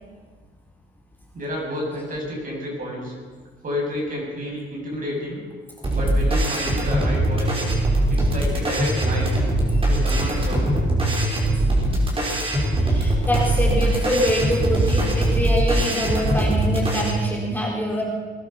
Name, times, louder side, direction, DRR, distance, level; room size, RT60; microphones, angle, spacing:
voice 1, 1.3-3.1 3.6-5.4 5.9-7.6 8.1-9.4 9.9-10.7, equal, 45° right, -2 dB, 6.8 m, -30 dB
sound 1, 5.8-17.1, right 1 dB, 30° right, 5.2 m, -21 dB
voice 2, 12.9-18.0, equal, 10° left, -3 dB, 3.9 m, -25 dB
20.5 x 11.5 x 5.7 m, 1.5 s
cardioid pair, 90°, 20 cm